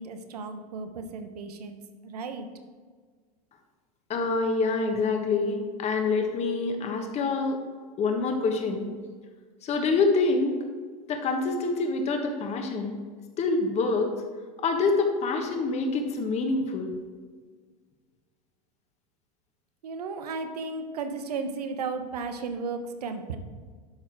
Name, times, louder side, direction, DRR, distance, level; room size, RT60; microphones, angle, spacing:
voice 1, 0.0-1.8 2.0-2.5 19.8-23.4, right 4 dB, 85° right, 8 dB, 1.0 m, -34 dB
voice 2, 4.1-7.6 8.0-8.9 9.6-10.6 11.1-13.0 13.4-14.1 14.6-17.0, left 3 dB, 35° left, 4 dB, 1.4 m, -26 dB
11.5 x 4.3 x 4.7 m, 1.5 s
hypercardioid pair, 105°, 20 cm